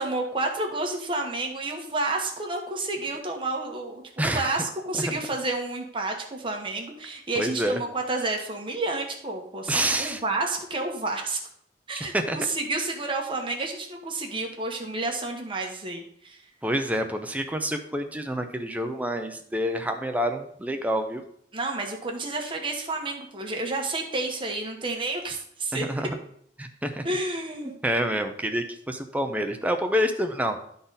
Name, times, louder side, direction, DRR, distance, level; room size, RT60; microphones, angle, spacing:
voice 1, 0.0-11.4 11.9-16.4 21.5-25.9 27.0-27.8, right 2 dB, 30° right, 1 dB, 1.2 m, -30 dB
voice 2, 4.2-4.6 4.9-5.0 7.4-7.8 9.7-10.2 12.1-12.4 16.6-21.2 25.7-26.1 26.6-27.0 27.8-30.6, equal, 10° right, 6 dB, 0.6 m, -27 dB
11.5 x 4.0 x 4.0 m, 0.67 s
head